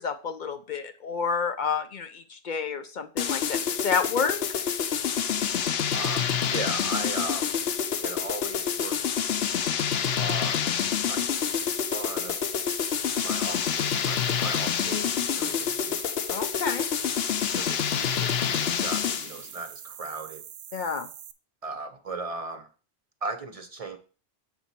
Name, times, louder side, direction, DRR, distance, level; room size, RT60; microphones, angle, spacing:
voice 1, 0.0-4.4 16.3-16.9 20.7-21.1, left 5 dB, 55° left, 8 dB, 0.6 m, -29 dB
sound 1, 3.2-19.4, left 8 dB, 80° left, 0.9 m, -27 dB
voice 2, 5.9-7.5 8.0-9.1 10.2-10.7 11.1-11.2 11.9-12.4 13.2-16.1 17.5-20.4 21.6-22.7 23.2-24.0, right 3 dB, 40° right, 8 dB, 0.7 m, -37 dB
sound 2, 11.3-21.3, right 9 dB, 85° right, 0.9 m, -44 dB
7.4 x 4.0 x 5.8 m, 0.37 s
omnidirectional pair, 1.0 m